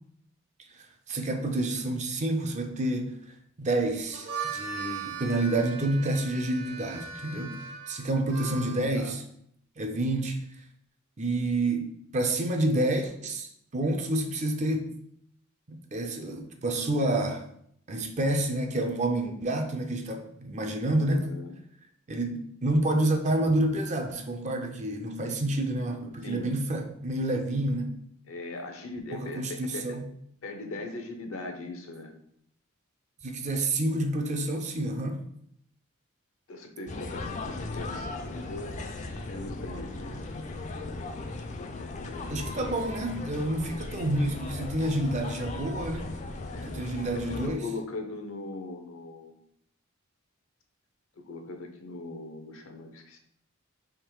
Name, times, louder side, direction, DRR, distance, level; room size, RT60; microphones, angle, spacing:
voice 1, 0.7-3.2 3.6-9.2 9.8-10.4 11.2-14.9 15.7-17.4 17.9-21.3 22.1-28.0 29.1-30.0 33.2-35.2 42.3-46.1 46.7-47.6, right 1 dB, 35° right, 0.5 m, -29 dB
Harmonica, 4.0-8.9, right 5 dB, 60° right, 1.1 m, -38 dB
voice 2, 20.9-21.6 26.2-26.5 28.3-30.0 30.4-32.1 36.5-40.2 41.6-42.8 46.5-49.4 51.2-53.2, left 2 dB, 70° left, 0.7 m, -40 dB
sound 1, 36.9-47.5, left 2 dB, 35° left, 0.4 m, -37 dB
3.6 x 3.0 x 4.6 m
head